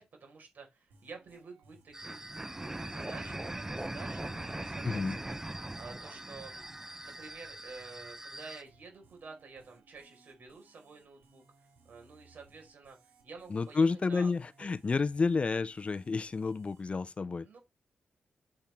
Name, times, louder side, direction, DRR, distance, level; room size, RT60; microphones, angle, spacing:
voice 1, 0.0-5.4 5.8-14.3 14.6-14.7 17.4-17.6, right 4 dB, 60° right, 4.7 m, -50 dB
sound 1, 0.9-16.9, right 3 dB, 85° right, 4.3 m, -64 dB
sound 2, 1.9-8.6, right 1 dB, 15° right, 0.8 m, -41 dB
voice 2, 4.8-5.2 13.5-17.5, left 4 dB, 35° left, 0.5 m, -30 dB
8.6 x 7.7 x 3.5 m
cardioid pair, 85°, 3 cm